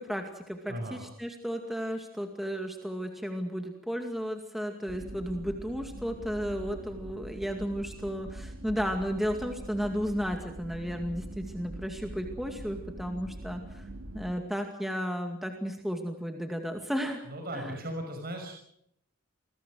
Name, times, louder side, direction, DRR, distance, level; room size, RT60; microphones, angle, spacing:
voice 1, 0.0-13.9 14.1-17.2 17.5-17.8, equal, ahead, 4 dB, 2.3 m, -34 dB
voice 2, 0.7-1.0 17.3-18.5, right 1 dB, 45° right, 3 dB, 5.9 m, -37 dB
sound 1, 4.9-14.3, right 1 dB, 85° right, 2.0 m, -43 dB
28.0 x 21.0 x 6.4 m, 0.75 s
head